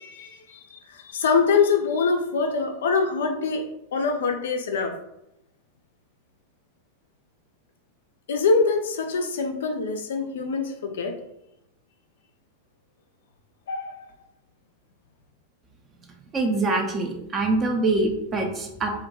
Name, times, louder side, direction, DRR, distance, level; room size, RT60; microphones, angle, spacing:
voice 1, 0.0-3.6 3.9-5.0 8.3-11.2 13.7-14.0, left 4 dB, 60° left, 4 dB, 0.3 m, -24 dB
voice 2, 16.3-19.1, right 2 dB, 25° right, 3 dB, 0.5 m, -24 dB
2.4 x 2.1 x 2.9 m, 0.82 s
figure-of-eight pair, 90°, 0 cm